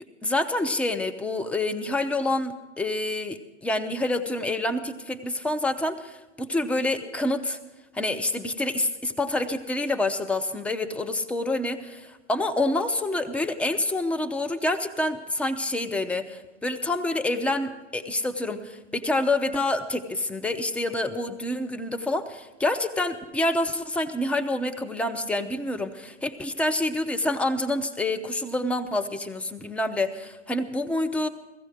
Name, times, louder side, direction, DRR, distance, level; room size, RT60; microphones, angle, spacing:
voice 1, 0.2-7.6 7.9-31.3, left 2 dB, 5° left, 8 dB, 0.5 m, -27 dB
16.0 x 15.5 x 5.0 m, 1.1 s
figure-of-eight pair, 105°, 36 cm